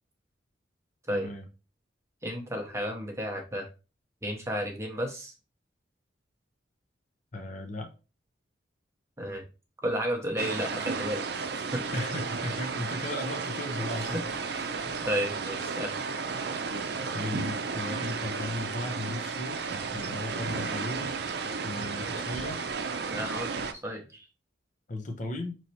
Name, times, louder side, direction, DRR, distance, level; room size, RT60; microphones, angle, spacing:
voice 1, 1.1-1.4 7.3-7.9 11.9-14.2 17.1-19.6 19.9-21.2 21.6-22.6 24.9-25.6, left 2 dB, 40° left, 0.7 m, -36 dB
voice 2, 2.2-3.7 4.2-5.3 9.2-9.5 9.8-11.4 11.7-11.8 14.0-14.2 14.5-14.8 15.0-16.0 23.1-24.3, equal, 15° right, 0.8 m, -33 dB
sound 1, 10.4-23.7, right 5 dB, 55° right, 0.5 m, -33 dB
5.5 x 3.0 x 2.8 m
head